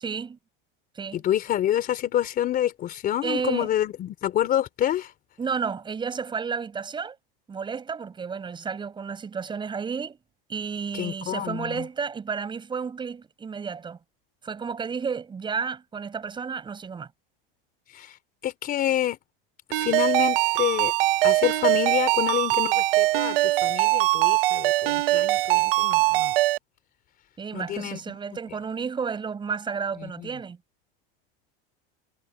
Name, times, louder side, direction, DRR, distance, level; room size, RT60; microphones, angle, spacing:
voice 1, 0.0-0.4 1.0-1.2 3.2-3.7 5.4-7.2 7.5-10.2 10.5-14.0 14.4-17.1 27.4-30.6, right 6 dB, 15° right, 7.2 m, -32 dB
voice 2, 1.1-5.1 10.9-11.8 17.9-18.2 18.4-19.2 19.8-20.9 21.2-26.3 27.5-28.0 30.0-30.3, left 11 dB, 30° left, 3.9 m, -27 dB
Ringtone, 19.7-26.6, right 19 dB, 75° right, 1.9 m, -22 dB
supercardioid pair, 155°, 29 cm